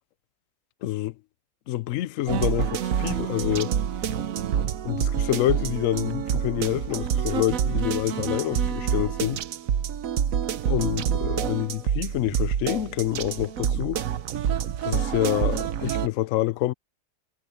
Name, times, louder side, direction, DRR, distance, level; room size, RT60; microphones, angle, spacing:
voice 1, 0.8-1.1 1.7-3.7 4.9-9.4 10.6-14.0 14.8-16.7, left 14 dB, 65° left, 0.8 m, -27 dB
sound 1, 2.3-16.1, right 8 dB, 60° right, 1.1 m, -27 dB
omnidirectional pair, 1.9 m